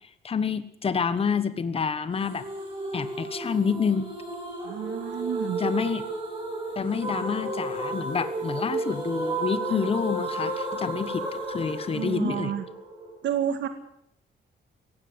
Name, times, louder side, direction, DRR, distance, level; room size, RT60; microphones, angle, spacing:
voice 1, 0.2-2.4 2.9-4.1 5.6-6.0 6.8-12.5, left 6 dB, 30° left, 13 dB, 1.2 m, -28 dB
sound 1, 2.2-13.1, right 2 dB, 25° right, 7.9 m, -33 dB
voice 2, 4.6-5.6 9.7-9.9 11.9-12.6 13.2-13.7, right 9 dB, 90° right, 9 dB, 2.0 m, -30 dB
17.5 x 16.5 x 9.7 m, 0.72 s
wide cardioid pair, 160°, 18 cm